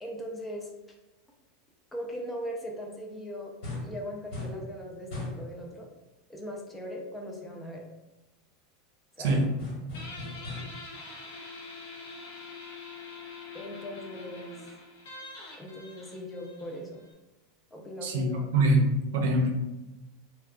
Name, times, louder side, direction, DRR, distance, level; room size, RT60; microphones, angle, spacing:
voice 1, 0.0-0.7 1.9-3.5 3.8-5.9 6.3-7.9 9.2-9.4 13.5-14.6 15.6-17.0 17.7-18.5, equal, 10° left, 0 dB, 0.3 m, -39 dB
sound 1, 3.6-4.0 4.3-4.6 5.1-5.4 9.2-10.8, left 2 dB, 45° left, 1.2 m, -38 dB
Guitar, 9.9-17.1, left 3 dB, 80° left, 0.8 m, -44 dB
voice 2, 18.0-19.5, right 1 dB, 75° right, 3 dB, 0.5 m, -24 dB
2.3 x 2.1 x 3.5 m, 1.0 s
supercardioid pair, 175°, 0 cm